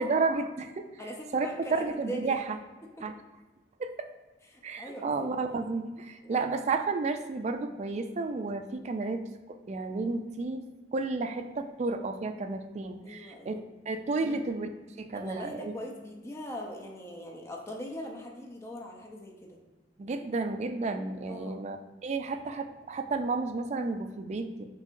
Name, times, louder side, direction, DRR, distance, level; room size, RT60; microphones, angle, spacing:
voice 1, 0.0-0.9 1.3-1.5 1.8-2.4 3.0-3.1 3.8-3.9 4.6-9.3 9.7-10.6 10.9-13.5 13.9-14.7 15.0-15.7 20.0-21.8 22.0-24.7, right 3 dB, 40° right, 7 dB, 0.3 m, -32 dB
voice 2, 1.0-2.4 3.0-3.1 4.5-5.3 6.2-6.4 13.0-13.6 14.2-14.4 15.1-19.6 21.3-21.6, equal, 15° left, -1 dB, 0.6 m, -41 dB
6.1 x 2.7 x 2.5 m, 1.2 s
head